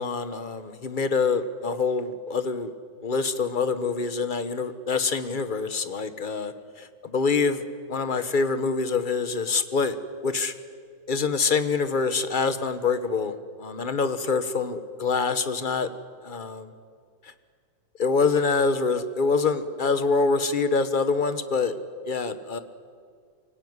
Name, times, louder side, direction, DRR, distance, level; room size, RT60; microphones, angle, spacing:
voice 1, 0.0-2.7 3.0-7.6 7.9-10.0 10.2-10.5 11.1-15.9 16.2-16.7 17.2-17.3 18.0-21.7 22.1-22.6, left 4 dB, 35° left, 11 dB, 1.0 m, -25 dB
25.0 x 17.0 x 9.6 m, 2.1 s
omnidirectional pair, 2.0 m